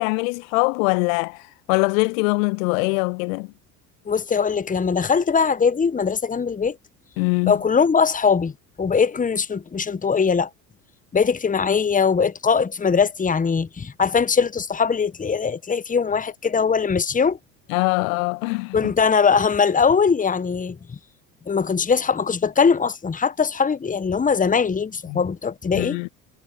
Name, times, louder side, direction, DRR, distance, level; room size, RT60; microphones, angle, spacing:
voice 1, 0.0-3.5 7.2-7.5 17.7-18.9 25.1-25.2 25.7-26.1, left 32 dB, 60° left, 1.3 m, -23 dB
voice 2, 4.1-6.7 7.5-8.5 8.8-10.5 11.1-17.4 18.7-20.8 21.5-26.0, left 6 dB, 15° left, 1.5 m, -21 dB
figure-of-eight pair, 65°, 47 cm